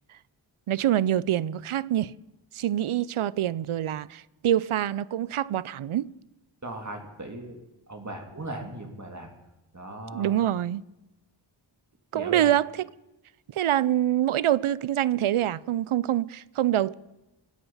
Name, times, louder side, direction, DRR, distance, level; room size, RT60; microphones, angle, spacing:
voice 1, 0.7-2.1 2.5-6.1 10.1-10.8 12.1-12.9 13.5-16.9, right 12 dB, 80° right, 0.6 m, -25 dB
voice 2, 6.6-7.6 7.9-9.3 9.7-10.4 12.1-12.5, right 1 dB, 35° right, 2.7 m, -38 dB
24.5 x 8.9 x 5.6 m
wide cardioid pair, 60°, 49 cm